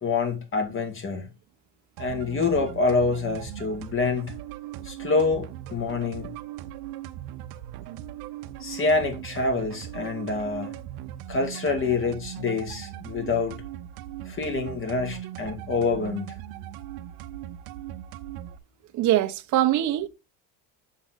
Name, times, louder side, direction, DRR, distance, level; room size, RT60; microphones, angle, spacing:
voice 1, 0.0-1.3 2.0-4.3 4.8-6.3 8.6-10.7 11.3-13.6 14.3-16.3, left 4 dB, 35° left, 2.5 m, -26 dB
sound 1, 2.0-18.6, right 12 dB, 80° right, 0.9 m, -39 dB
voice 2, 18.9-20.1, right 13 dB, 55° right, 1.0 m, -22 dB
7.4 x 6.5 x 4.0 m
cardioid pair, 110°, 36 cm